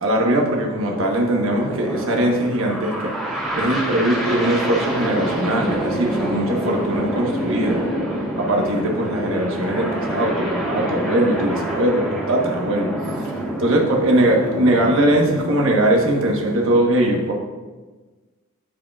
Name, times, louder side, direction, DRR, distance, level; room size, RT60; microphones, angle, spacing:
voice 1, 0.0-3.1 3.5-7.8 8.3-12.9 13.6-17.3, right 1 dB, 65° right, 0 dB, 1.2 m, -20 dB
sound 1, 0.9-16.8, right 1 dB, ahead, 1.4 m, -27 dB
11.5 x 5.0 x 2.4 m, 1.3 s
head